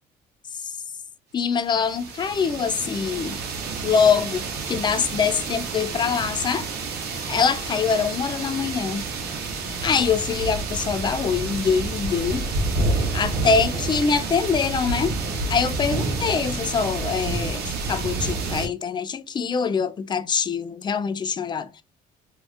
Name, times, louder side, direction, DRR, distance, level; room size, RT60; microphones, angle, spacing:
voice 1, 1.3-3.4 3.8-6.7 7.1-9.0 9.7-12.4 13.0-15.2 15.5-21.8, left 6 dB, 25° left, 0.4 m, -24 dB
sound 1, 1.6-18.7, right 3 dB, 70° right, 1.0 m, -29 dB
2.7 x 2.4 x 3.2 m
cardioid pair, 110°, 17 cm